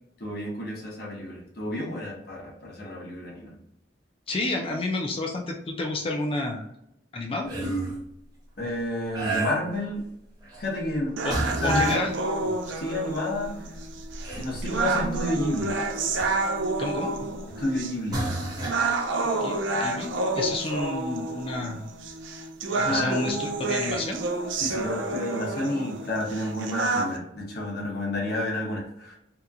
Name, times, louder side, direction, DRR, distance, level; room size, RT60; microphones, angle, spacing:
voice 1, 0.2-3.5 8.6-10.0 10.6-12.1 12.7-13.5 14.3-15.8 17.6-18.2 22.7-23.2 24.6-29.2, left 1 dB, 55° left, -3 dB, 0.7 m, -30 dB
voice 2, 4.3-6.7 7.1-7.5 11.2-11.4 11.6-12.2 16.8-17.3 19.2-21.8 22.9-24.2, left 2 dB, 30° left, 2 dB, 0.3 m, -30 dB
sound 1, 7.4-8.0 9.1-9.9 10.4-10.7 11.3-12.1 12.9-13.0 13.4-16.6 17.5-17.7 18.1-18.8 22.1-22.2 23.9-24.0 24.6-24.8, right 2 dB, 20° right, 0.8 m, -32 dB
sound 2, 11.2-27.2, right 3 dB, 80° right, 0.4 m, -29 dB
2.8 x 2.4 x 2.2 m, 0.78 s
head